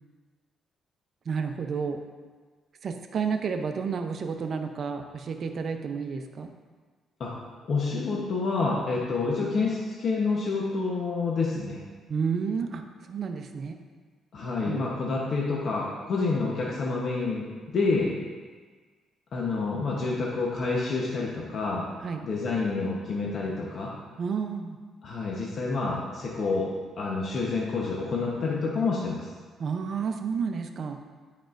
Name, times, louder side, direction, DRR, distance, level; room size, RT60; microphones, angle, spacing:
voice 1, 1.3-2.0 2.8-6.5 12.1-12.8 13.1-13.8 14.6-14.9 22.0-22.2 24.2-24.8 29.6-31.0, right 5 dB, 55° right, 5 dB, 0.6 m, -30 dB
voice 2, 7.7-11.8 14.3-18.1 19.3-21.9 22.2-23.9 25.0-26.7 27.0-29.3, left 3 dB, 55° left, -3 dB, 1.0 m, -28 dB
9.4 x 5.1 x 2.6 m, 1.5 s
cardioid pair, 90°, 0 cm